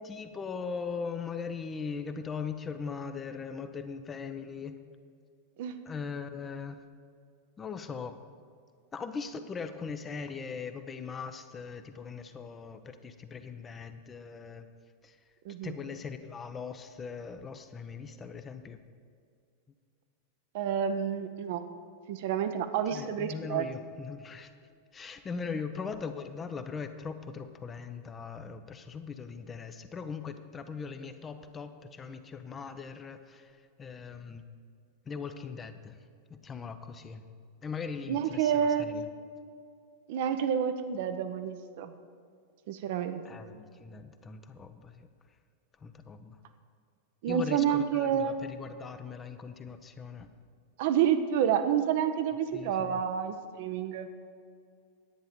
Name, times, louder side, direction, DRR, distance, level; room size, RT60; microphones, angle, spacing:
voice 1, 0.0-4.8 5.9-6.8 7.6-8.2 8.9-14.7 15.0-15.2 15.6-18.8 22.9-24.5 24.9-34.5 35.1-36.0 36.3-37.2 37.6-39.0 43.2-45.1 45.8-46.4 47.3-50.3 52.5-53.0, left 5 dB, 20° left, 9 dB, 0.6 m, -40 dB
voice 2, 20.5-21.6 22.1-23.7 38.1-38.9 40.1-41.9 42.7-43.2 47.2-48.3 50.8-54.1, right 8 dB, 50° right, 9 dB, 0.7 m, -29 dB
10.0 x 9.1 x 5.1 m, 2.3 s
figure-of-eight pair, 90°, 0 cm